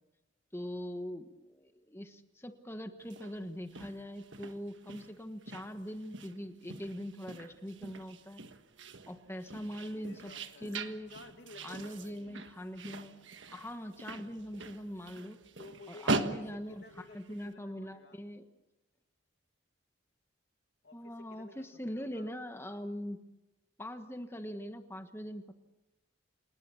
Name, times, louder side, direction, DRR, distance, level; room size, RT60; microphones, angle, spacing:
voice 1, 0.5-8.4 9.1-10.3 10.6-11.1 11.6-13.2 13.5-15.4 15.9-16.7 17.1-18.4 20.9-23.2 23.8-25.5, equal, 10° left, 7 dB, 1.3 m, -42 dB
sound 1, 3.0-17.5, right 3 dB, 65° right, 1.5 m, -42 dB
voice 2, 9.8-12.4 15.6-18.2 20.8-22.3, left 2 dB, 55° left, 6 dB, 2.1 m, -54 dB
28.5 x 19.0 x 7.2 m, 1.0 s
head